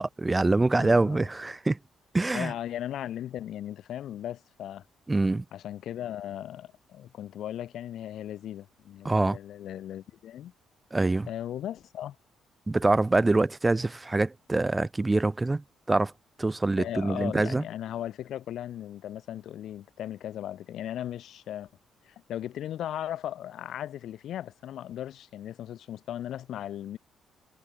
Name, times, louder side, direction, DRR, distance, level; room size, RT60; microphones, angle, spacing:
voice 1, 0.0-1.8 2.1-2.5 5.1-5.4 9.0-9.4 10.9-11.3 12.7-16.1 16.4-17.6, right 2 dB, 20° right, 2.3 m, -25 dB
voice 2, 0.7-1.3 2.3-4.8 5.5-10.5 11.3-12.2 16.8-21.7 22.0-27.0, left 11 dB, 75° left, 7.6 m, -37 dB
cardioid pair, 90°, 0 cm